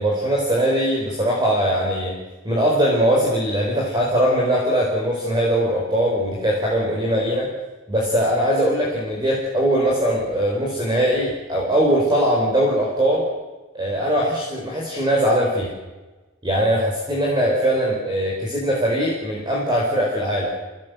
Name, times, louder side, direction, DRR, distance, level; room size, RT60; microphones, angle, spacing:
voice 1, 0.0-2.2 2.4-7.5 7.9-13.3 13.7-15.7 16.4-20.5, equal, 20° right, -2 dB, 4.4 m, -21 dB
25.5 x 18.5 x 7.9 m, 1.2 s
head